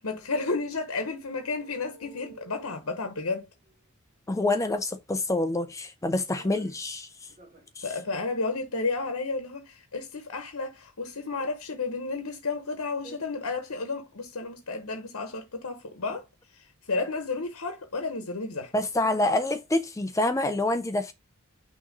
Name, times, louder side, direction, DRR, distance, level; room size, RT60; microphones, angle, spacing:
voice 1, 0.0-3.5 7.8-16.2 16.5-18.7, left 3 dB, 85° left, 1.1 m, -32 dB
sound 1, 1.4-3.9 5.1-5.7 6.0-6.9 7.3-7.8 8.1-8.2, right 3 dB, 35° right, 1.7 m, -53 dB
voice 2, 4.3-7.1 7.8-7.9 13.1-13.2 18.7-21.1, left 2 dB, 15° left, 0.5 m, -27 dB
6.2 x 3.0 x 5.2 m
head